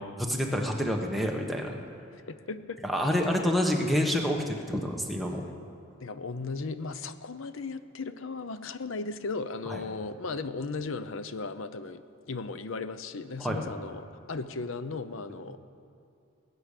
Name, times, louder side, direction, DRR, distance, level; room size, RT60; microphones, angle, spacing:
voice 1, 0.0-1.8 2.8-5.5 9.7-9.8 13.4-13.7, equal, ahead, 1 dB, 1.2 m, -28 dB
voice 2, 2.3-2.8 6.0-12.0 12.3-15.6, left 3 dB, 70° left, 12 dB, 0.7 m, -36 dB
20.0 x 8.6 x 6.6 m, 2.7 s
head